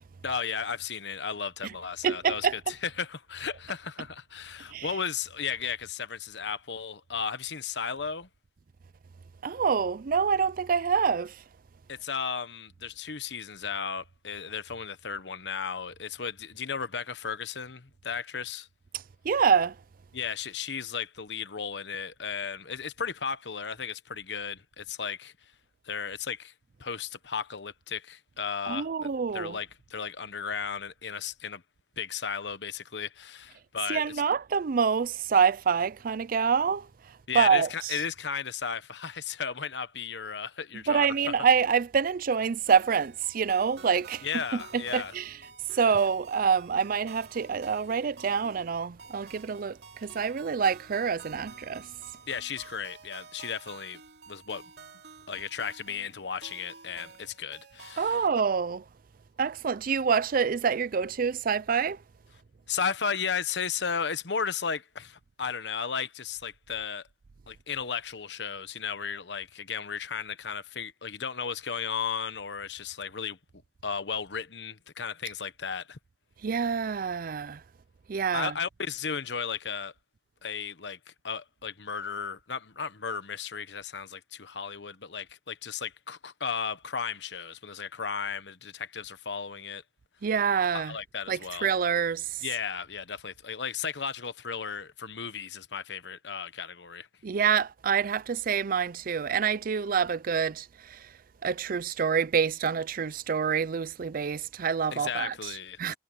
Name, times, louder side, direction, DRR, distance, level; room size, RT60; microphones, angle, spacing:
voice 1, 0.2-8.3 11.9-18.7 20.1-25.3 25.8-26.5 26.8-31.6 32.0-34.0 37.3-41.3 44.2-45.1 45.7-45.8 52.3-54.0 54.3-54.6 55.3-58.3 62.7-67.0 67.5-73.4 73.8-76.0 78.3-79.9 80.4-81.0 81.2-89.8 90.7-91.7 92.4-97.1 104.9-106.0, left 6 dB, 80° left, 1.1 m, -35 dB
voice 2, 2.0-2.6 4.7-4.9 9.4-11.4 19.2-19.8 28.7-29.6 33.9-36.9 37.3-38.0 40.9-45.3 45.7-51.9 58.0-58.8 59.4-62.0 76.4-77.6 78.1-78.5 90.2-90.9 91.3-92.4 97.2-101.1 101.4-105.3 105.8-105.9, right 6 dB, 55° right, 0.4 m, -26 dB
sound 1, 42.7-58.1, right 5 dB, 70° right, 2.6 m, -50 dB
head